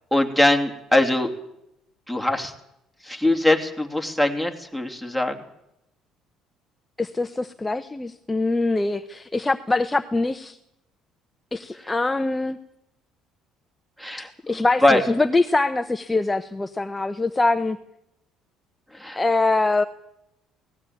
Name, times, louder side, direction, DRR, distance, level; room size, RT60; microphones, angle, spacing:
voice 1, 0.1-1.3 2.1-2.5 3.0-5.4 14.0-15.0 18.9-19.2, left 1 dB, 5° right, 6 dB, 2.9 m, -22 dB
voice 2, 7.0-10.6 11.5-12.6 14.5-17.8 19.2-19.8, left 2 dB, 15° left, 9 dB, 0.9 m, -23 dB
18.5 x 15.5 x 9.4 m, 0.83 s
cardioid pair, 100°, 0 cm